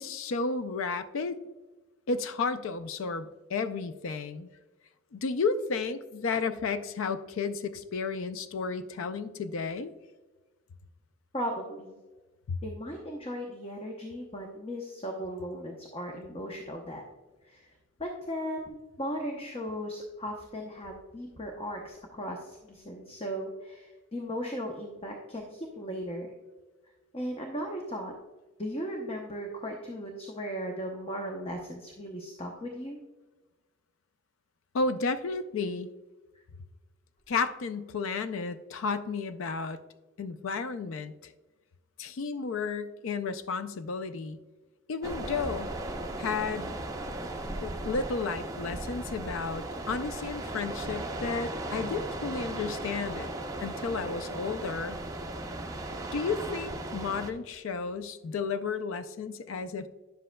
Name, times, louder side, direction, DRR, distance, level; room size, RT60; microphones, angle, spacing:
voice 1, 0.0-1.4 2.1-4.5 5.1-9.9 12.5-12.6 34.7-35.9 37.3-39.8 40.2-41.3 42.0-44.4 44.9-45.7 46.2-46.8 47.6-53.3 53.6-55.0 56.1-59.9, left 4 dB, 65° left, 12 dB, 0.4 m, -32 dB
voice 2, 11.3-12.0 12.6-17.0 17.5-17.7 18.0-26.3 27.1-28.1 28.6-33.0, equal, 25° left, 1 dB, 0.7 m, -37 dB
sound 1, 45.0-57.3, right 2 dB, 15° right, 0.6 m, -37 dB
10.0 x 7.5 x 2.2 m, 1.2 s
head